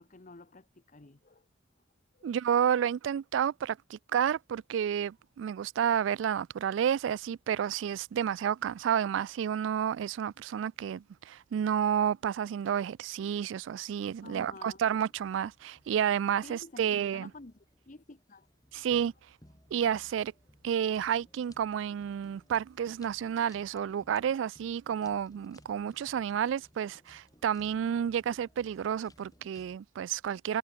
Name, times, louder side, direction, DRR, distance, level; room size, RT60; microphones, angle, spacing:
voice 1, 0.0-1.4 2.1-2.3 14.2-14.8 16.4-18.5, left 2 dB, 40° left, 1.0 m, -50 dB
voice 2, 2.2-17.3 18.7-19.1 19.7-20.3 20.6-30.6, right 8 dB, 80° right, 0.3 m, -30 dB
sound 1, 14.1-29.8, left 1 dB, 20° left, 3.1 m, -62 dB
head